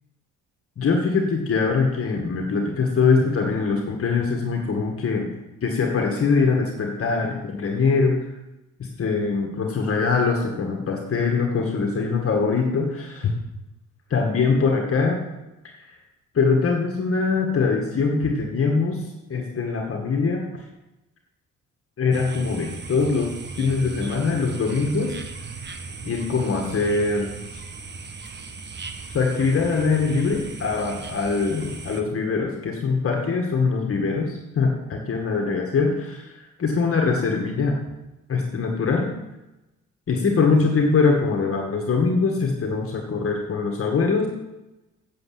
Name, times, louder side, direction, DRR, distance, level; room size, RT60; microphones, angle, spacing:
voice 1, 0.8-5.3 5.6-8.2 8.8-13.3 14.1-15.2 15.7-15.9 16.3-19.0 19.3-20.4 22.0-25.2 26.0-27.6 29.1-36.3 36.6-37.8 38.3-39.1 40.1-44.3, left 4 dB, 50° left, 1 dB, 1.9 m, -22 dB
sound 1, 22.1-32.0, right 4 dB, 35° right, 1.3 m, -37 dB
7.9 x 7.9 x 7.7 m, 1.0 s
cardioid pair, 90°, 30 cm